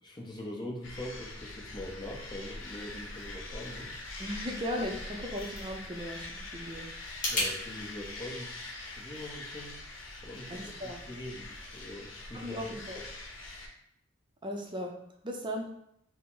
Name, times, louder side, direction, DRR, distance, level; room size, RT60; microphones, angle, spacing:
voice 1, 0.0-4.0 7.2-9.8 10.2-12.6, left 1 dB, 25° left, -1 dB, 0.7 m, -43 dB
sound 1, 0.8-13.7, left 2 dB, 80° left, 0.7 m, -43 dB
voice 2, 4.2-6.9 10.5-11.0 12.3-13.0 14.4-14.9 15.2-15.7, equal, 25° right, 1 dB, 0.5 m, -37 dB
sound 2, 4.9-7.5, left 2 dB, 45° left, 1.3 m, -36 dB
4.7 x 2.1 x 3.8 m, 0.74 s
head